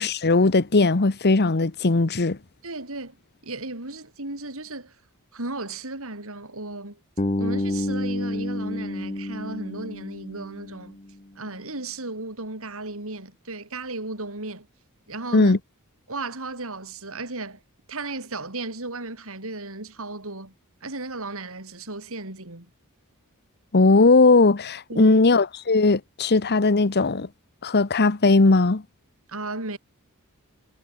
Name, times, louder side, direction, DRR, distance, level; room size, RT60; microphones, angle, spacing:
voice 1, 0.0-2.4 15.3-15.6 23.7-27.3 27.6-28.8, left 3 dB, 45° left, 1.0 m, -18 dB
voice 2, 2.6-3.2 3.4-4.9 5.3-7.0 7.4-11.0 11.3-14.7 15.1-15.5 16.1-17.6 17.9-20.5 20.8-22.7 24.9-25.2 29.3-29.8, right 2 dB, 65° right, 5.2 m, -35 dB
Bass guitar, 7.2-11.1, left 1 dB, 30° left, 1.4 m, -29 dB
head